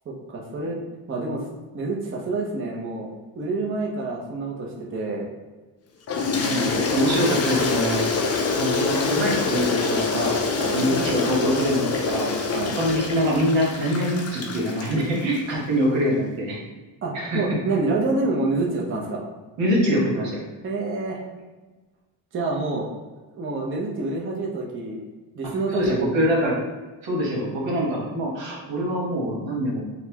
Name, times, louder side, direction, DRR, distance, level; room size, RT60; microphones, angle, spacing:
voice 1, 0.1-0.8 1.1-1.5 1.7-3.1 3.3-5.3 6.3-6.8 10.6-10.8 12.5-12.7 17.0-19.2 20.6-21.3 22.3-22.9 23.4-25.0 25.4-26.1, right 3 dB, 30° right, -2 dB, 0.6 m, -27 dB
Toilet flush, 6.1-15.4, left 4 dB, 35° left, 0.4 m, -25 dB
voice 2, 6.2-8.0 8.5-10.4 10.7-12.3 12.7-16.6 17.1-17.4 19.6-20.4 25.7-26.6 27.0-29.8, equal, 85° right, -3 dB, 1.2 m, -24 dB
4.0 x 2.1 x 2.8 m, 1.2 s
cardioid pair, 110°, 44 cm